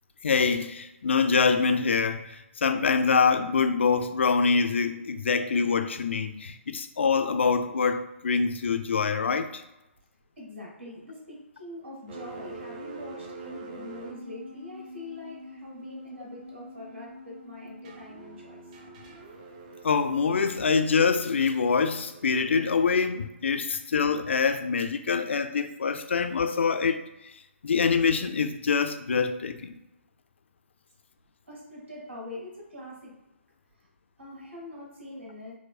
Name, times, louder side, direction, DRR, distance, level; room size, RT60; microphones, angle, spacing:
voice 1, 0.2-9.6 19.8-27.3 27.6-29.7, left 5 dB, 60° left, 8 dB, 0.3 m, -25 dB
voice 2, 10.4-18.6 31.5-33.1 33.8-33.9 34.2-35.5, left 1 dB, 65° right, -3 dB, 1.2 m, -43 dB
sound 1, 12.1-25.9, right 1 dB, 35° right, 0.4 m, -46 dB
4.8 x 2.0 x 2.3 m, 0.94 s
figure-of-eight pair, 130°, 7 cm